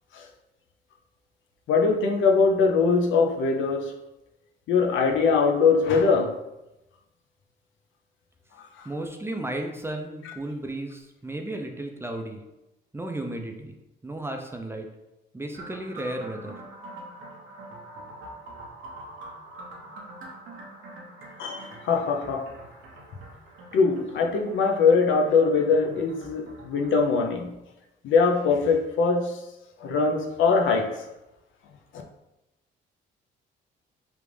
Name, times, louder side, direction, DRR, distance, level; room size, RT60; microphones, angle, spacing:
voice 1, 1.7-3.9 4.7-6.3 10.2-10.3 21.4-22.5 23.7-27.5 28.0-29.4 29.8-31.0, left 4 dB, 75° left, 2 dB, 0.6 m, -22 dB
voice 2, 8.8-12.4 12.9-13.7 14.0-14.9 15.3-16.5, right 1 dB, 10° right, 4 dB, 0.4 m, -34 dB
sound 1, 15.5-27.2, right 2 dB, 90° right, 0.8 m, -44 dB
3.4 x 2.5 x 3.2 m, 0.94 s
cardioid pair, 90°, 20 cm